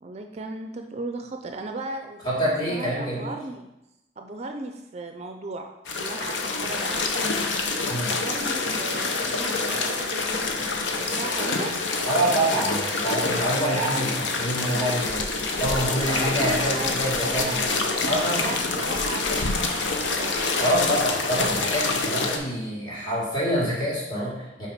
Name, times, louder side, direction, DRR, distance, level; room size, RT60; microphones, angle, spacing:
voice 1, 0.0-3.7 4.2-7.2 8.1-10.5 10.9-11.7 16.4-17.8 18.3-20.5, right 2 dB, 35° right, 5 dB, 0.4 m, -36 dB
voice 2, 2.2-3.3 7.9-8.2 12.0-15.2 15.6-18.4 20.6-24.7, right 1 dB, 25° left, -7 dB, 2.7 m, -26 dB
sound 1, 5.9-22.4, left 3 dB, 90° left, 0.8 m, -26 dB
5.9 x 4.7 x 5.0 m, 0.94 s
head